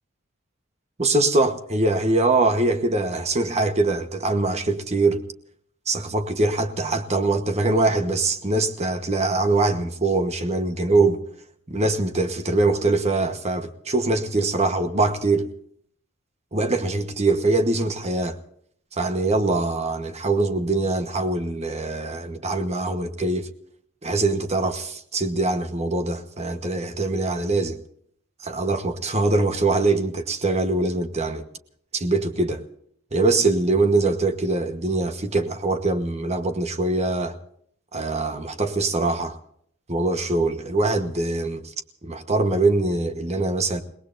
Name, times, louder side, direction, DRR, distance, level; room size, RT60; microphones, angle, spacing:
voice 1, 1.0-5.2 5.9-11.2 11.7-15.5 16.5-18.4 18.9-23.5 24.0-27.8 28.4-31.4 31.9-32.6 33.1-37.4 37.9-39.4 39.9-41.7 42.0-43.8, right 2 dB, 35° right, 1.2 m, -23 dB
29.5 x 19.0 x 2.6 m
head